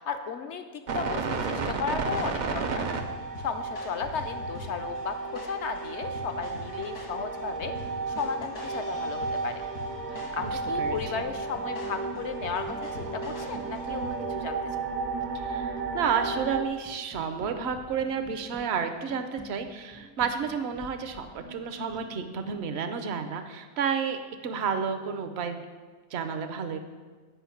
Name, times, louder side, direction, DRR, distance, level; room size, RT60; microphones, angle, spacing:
voice 1, 0.0-2.9 3.4-7.7 8.1-9.6 10.1-14.9, left 6 dB, 65° left, 8 dB, 0.7 m, -35 dB
sound 1, 0.9-16.7, right 4 dB, 75° right, 0.4 m, -33 dB
sound 2, 1.4-14.5, left 2 dB, 85° left, 2.4 m, -44 dB
sound 3, 7.5-22.7, equal, 15° right, 0.4 m, -50 dB
voice 2, 10.4-11.2 15.3-25.6 26.1-26.8, right 6 dB, 55° right, 7 dB, 0.8 m, -31 dB
8.3 x 5.2 x 5.8 m, 1.4 s
omnidirectional pair, 1.6 m